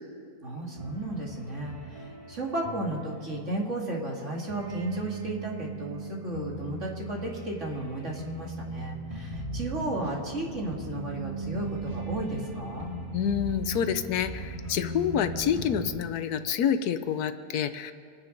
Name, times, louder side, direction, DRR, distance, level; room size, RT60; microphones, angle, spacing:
voice 1, 0.4-12.9, right 1 dB, 45° right, -2 dB, 2.6 m, -34 dB
sound 1, 0.8-4.1 4.4-15.9, right 2 dB, 20° right, 1.9 m, -38 dB
voice 2, 13.1-17.9, left 8 dB, 75° left, 10 dB, 1.2 m, -28 dB
26.5 x 9.8 x 5.3 m, 2.2 s
omnidirectional pair, 1.7 m